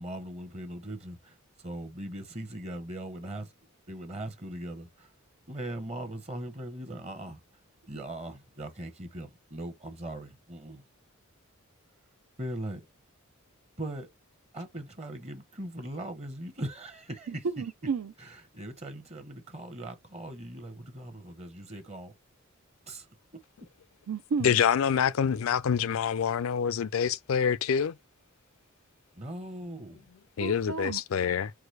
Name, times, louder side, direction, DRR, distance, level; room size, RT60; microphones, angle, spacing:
voice 1, 0.0-3.5 3.9-5.1 5.5-7.4 7.8-10.8 12.4-12.8 13.8-14.1 14.5-17.5 18.2-22.1 22.9-23.1 29.2-30.0, right 1 dB, 30° right, 0.8 m, -40 dB
voice 2, 17.3-18.1 24.1-24.6 30.4-31.0, right 5 dB, 80° right, 0.5 m, -32 dB
voice 3, 24.4-28.0 30.4-31.5, left 7 dB, 70° left, 0.4 m, -26 dB
4.8 x 2.2 x 4.5 m
head